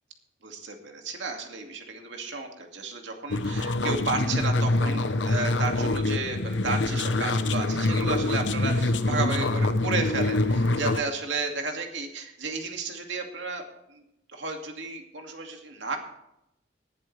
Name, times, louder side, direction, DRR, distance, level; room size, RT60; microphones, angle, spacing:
voice 1, 0.4-13.6 13.9-14.0 14.3-16.0, right 3 dB, 85° right, 3 dB, 2.3 m, -33 dB
sound 1, 3.3-11.0, left 2 dB, 75° left, 0.9 m, -25 dB
19.5 x 11.5 x 3.4 m, 0.82 s
head